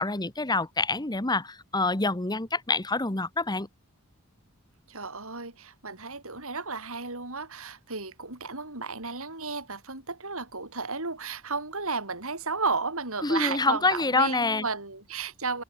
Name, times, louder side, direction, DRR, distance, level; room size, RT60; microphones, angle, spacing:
voice 1, 0.0-3.7 13.2-14.6, left 3 dB, 20° left, 1.4 m, -26 dB
voice 2, 4.9-15.6, right 4 dB, 65° right, 7.8 m, -33 dB
head